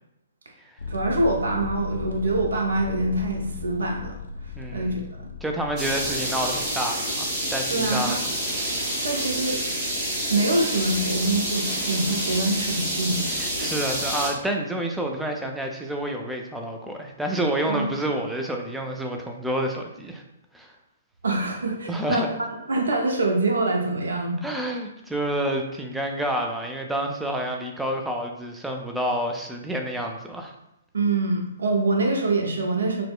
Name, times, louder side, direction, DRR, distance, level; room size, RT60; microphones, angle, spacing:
sound 1, 0.8-6.7, left 5 dB, 65° left, 0.4 m, -36 dB
voice 1, 0.9-4.2 4.7-5.3 7.7-8.2 9.0-9.6 10.3-13.3 13.6-13.7 17.7-17.9 21.2-24.4 30.9-33.0, right 2 dB, 65° right, 1 dB, 0.6 m, -25 dB
voice 2, 4.6-5.0 5.4-8.2 13.3-20.2 20.5-20.7 21.9-22.3 24.4-30.5, right 1 dB, 5° right, 2 dB, 0.3 m, -29 dB
sound 2, 5.8-14.3, right 1 dB, 30° right, 0.8 m, -28 dB
4.1 x 2.1 x 2.3 m, 0.83 s
figure-of-eight pair, 120°, 0 cm